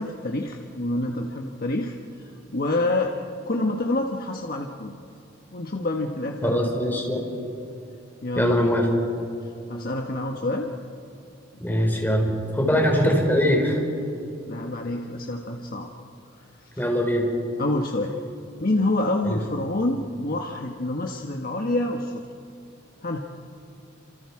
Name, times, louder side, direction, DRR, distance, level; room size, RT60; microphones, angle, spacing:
voice 1, 0.0-3.1 3.4-4.9 5.5-6.7 8.2-8.7 9.4-10.7 11.7-11.8 12.7-12.9 14.5-15.9 16.6-16.9 17.6-18.1 18.6-22.2 23.0-23.2, left 2 dB, 50° left, 2 dB, 1.4 m, -27 dB
voice 2, 6.4-7.2 8.4-8.9 11.6-13.8 16.8-17.3 19.3-19.4, equal, 10° left, -1 dB, 4.7 m, -22 dB
29.0 x 28.0 x 4.9 m, 2.7 s
head